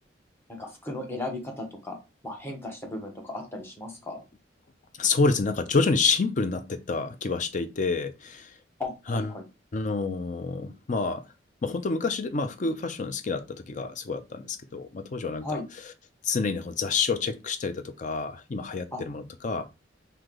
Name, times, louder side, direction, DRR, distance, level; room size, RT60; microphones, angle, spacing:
voice 1, 0.5-2.0 2.2-4.2 8.8-9.4 15.4-15.7 18.9-19.0, left 2 dB, 15° left, 1.0 m, -36 dB
voice 2, 5.0-8.5 9.1-9.3 9.7-11.2 11.6-15.6 16.2-19.6, left 4 dB, 45° left, 0.5 m, -28 dB
3.2 x 2.8 x 3.8 m
head